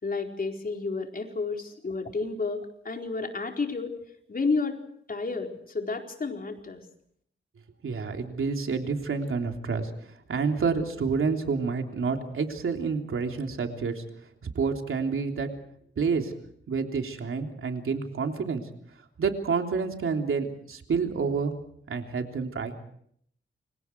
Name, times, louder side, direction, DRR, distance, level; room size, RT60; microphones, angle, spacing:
voice 1, 0.0-3.9 4.3-4.8 5.1-6.9, left 4 dB, 45° left, 3 dB, 4.4 m, -31 dB
voice 2, 7.8-14.0 14.6-15.5 16.0-16.3 16.7-18.6 19.2-21.5 21.9-22.8, right 5 dB, 80° right, 4 dB, 3.5 m, -29 dB
29.0 x 25.5 x 4.7 m, 0.67 s
wide cardioid pair, 100°, 21 cm